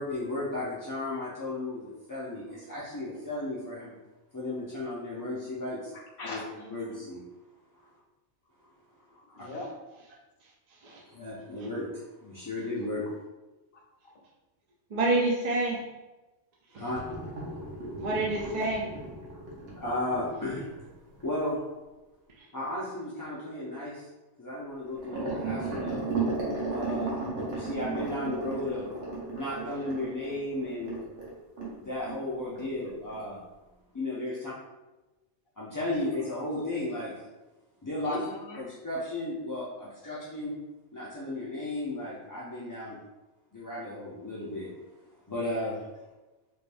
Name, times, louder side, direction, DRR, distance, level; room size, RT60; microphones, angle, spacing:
voice 1, 0.0-3.9 4.3-5.9 6.3-6.4 6.7-7.2 11.0-13.1 16.7-17.0 19.8-20.7 21.2-21.6 22.5-24.1 24.4-26.1 26.7-27.2 27.5-28.9 29.4-31.0 31.6-33.4 33.9-34.3 35.6-37.1 37.8-38.2 38.6-40.6 40.9-43.0 43.5-44.7 45.3-45.8, left 1 dB, 30° left, -8 dB, 0.4 m, -34 dB
voice 2, 6.2-7.0 9.1-9.7 19.3-19.4 26.6-26.9 38.0-38.6 40.0-40.1, left 1 dB, 55° left, -1 dB, 0.8 m, -41 dB
voice 3, 14.9-15.8 16.7-16.8 18.0-18.8, right 2 dB, 50° right, -3 dB, 0.5 m, -27 dB
sound 1, 16.9-21.5 24.9-31.8 32.0-32.2 32.6-32.7 33.1-33.2, right 3 dB, 70° right, 1.2 m, -35 dB
3.6 x 2.6 x 3.4 m, 1.1 s
omnidirectional pair, 1.3 m